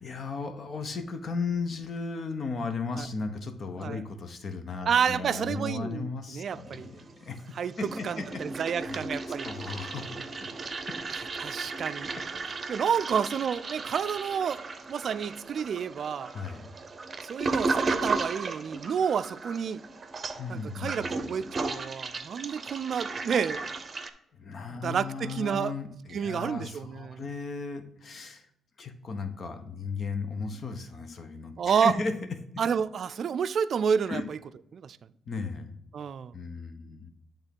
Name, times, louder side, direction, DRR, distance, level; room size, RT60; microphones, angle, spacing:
voice 1, 0.0-8.4 8.9-10.5 10.9-11.0 12.2-12.3 16.3-16.7 20.3-21.1 22.5-22.7 24.3-28.5 28.8-32.1 34.1-34.2 35.3-35.8 36.3-37.1, left 4 dB, 50° left, 8 dB, 1.0 m, -36 dB
voice 2, 4.9-6.9 7.6-7.7 8.0-9.5 11.4-12.1 12.7-14.6 14.9-16.3 17.2-19.8 20.5-23.6 24.7-25.7 26.1-27.2 31.6-31.9 32.6-34.4 34.7-35.0 35.9-36.3, right 7 dB, 55° right, 14 dB, 0.4 m, -29 dB
Toilet flush, 6.5-7.4 7.6-24.1, right 3 dB, 35° right, 0.7 m, -35 dB
8.1 x 3.6 x 5.3 m, 0.78 s
cardioid pair, 90°, 0 cm